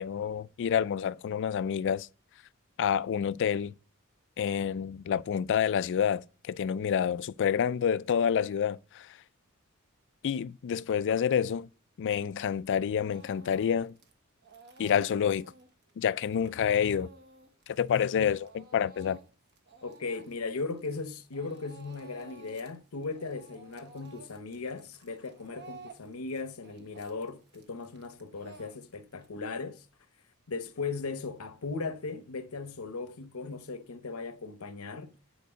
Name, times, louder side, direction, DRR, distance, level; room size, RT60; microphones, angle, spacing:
voice 1, 0.0-2.1 2.8-3.7 4.4-9.2 10.2-11.7 12.0-13.9 14.8-15.4 16.0-17.1 17.7-19.2, left 8 dB, 60° left, 0.3 m, -28 dB
Speech / Crying sobbing, 13.1-14.1 14.4-21.1 21.3-22.8 23.0-29.3, right 4 dB, 55° right, 1.1 m, -53 dB
voice 2, 19.8-29.8 30.5-35.2, left 4 dB, 80° left, 0.9 m, -37 dB
9.3 x 4.5 x 5.0 m
head